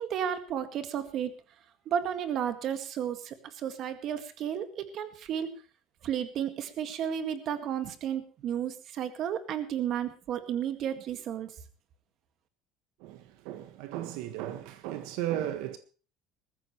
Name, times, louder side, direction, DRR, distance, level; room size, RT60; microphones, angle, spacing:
voice 1, 0.0-1.3 1.9-5.6 6.0-11.5, right 9 dB, 45° right, 2.0 m, -33 dB
voice 2, 13.0-15.8, right 12 dB, 75° right, 1.6 m, -35 dB
20.5 x 14.5 x 3.2 m
cardioid pair, 160°, 0 cm